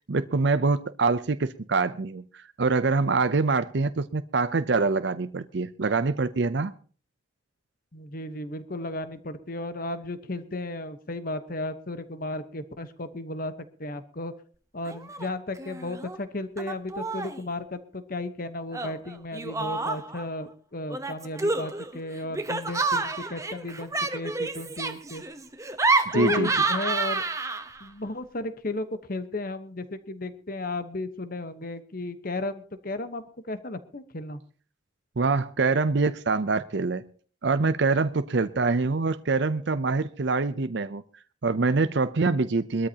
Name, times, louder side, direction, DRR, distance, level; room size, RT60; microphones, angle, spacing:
voice 1, 0.1-6.7 26.1-26.5 35.2-37.0 37.4-41.0 41.4-42.9, right 3 dB, 60° right, 12 dB, 0.6 m, -25 dB
voice 2, 7.9-13.5 13.8-14.3 14.7-25.2 26.1-27.2 27.8-34.4, left 2 dB, 45° left, 10 dB, 1.1 m, -34 dB
Laughter, 14.8-15.3 15.6-16.2 16.6-17.4 18.7-20.2 20.9-27.9, right 3 dB, 15° right, 0.9 m, -29 dB
22.0 x 13.0 x 2.9 m, 0.40 s
head